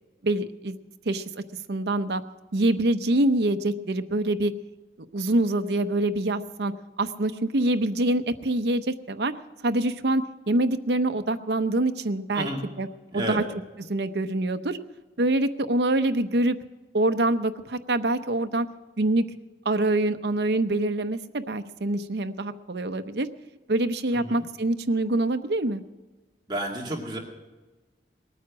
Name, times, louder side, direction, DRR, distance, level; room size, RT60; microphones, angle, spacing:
voice 1, 0.2-0.8 1.1-1.4 1.7-2.2 2.5-4.5 5.1-6.7 7.0-9.3 9.6-12.5 12.8-12.9 13.1-13.4 13.9-14.8 15.2-16.6 16.9-18.7 19.0-19.2 19.6-23.3 23.7-25.8, right 2 dB, 75° right, 9 dB, 0.8 m, -25 dB
voice 2, 12.3-12.6 13.1-13.4 24.1-24.4 26.5-27.2, right 1 dB, 25° right, -1 dB, 2.2 m, -31 dB
20.0 x 9.3 x 6.1 m, 1.2 s
head